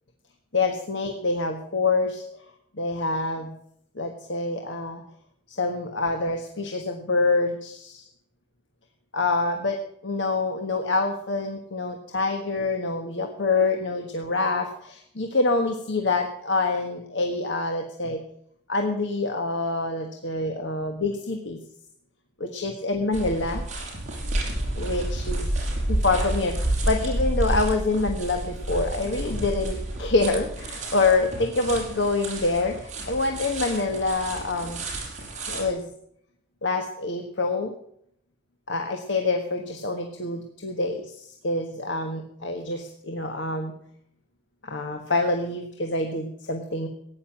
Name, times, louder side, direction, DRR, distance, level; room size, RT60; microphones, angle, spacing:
voice 1, 0.5-2.2 2.8-3.5 3.9-5.0 5.5-8.0 9.1-18.2 18.7-21.6 22.4-23.6 24.8-25.5 25.9-34.8 35.5-35.9 36.6-37.7 38.7-43.7 44.6-46.9, left 3 dB, 65° left, 4 dB, 1.5 m, -26 dB
sound 1, 23.1-35.7, right 1 dB, 40° right, 5.8 m, -30 dB
16.5 x 9.8 x 7.4 m, 0.71 s
head